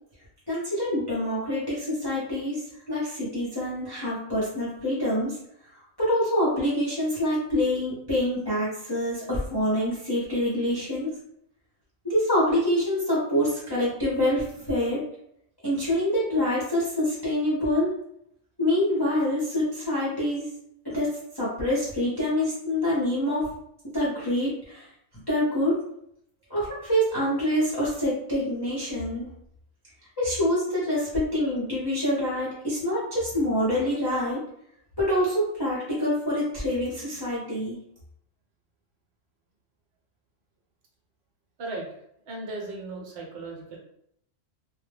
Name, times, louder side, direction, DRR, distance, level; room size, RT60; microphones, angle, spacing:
voice 1, 0.5-2.6 2.9-5.4 6.0-11.1 12.0-15.0 15.6-18.0 18.6-20.5 20.8-23.5 23.9-24.9 25.3-25.8 26.5-29.3 30.2-34.4 35.0-37.8, left 1 dB, 25° left, -9 dB, 0.6 m, -26 dB
voice 2, 41.6-42.0 42.3-43.8, right 2 dB, 60° right, -2 dB, 0.9 m, -36 dB
2.2 x 2.1 x 3.2 m, 0.73 s
omnidirectional pair, 1.3 m